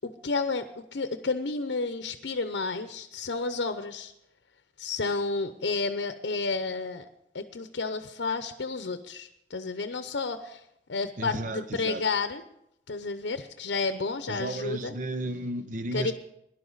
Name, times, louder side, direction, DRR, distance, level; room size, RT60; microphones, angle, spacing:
voice 1, 0.0-4.1 4.8-7.1 7.3-10.6 10.9-12.4 12.9-14.9 15.9-16.1, left 4 dB, 80° left, 0.7 m, -31 dB
voice 2, 11.2-12.0 14.3-16.1, right 2 dB, 45° right, 0.7 m, -33 dB
17.5 x 11.0 x 4.0 m
head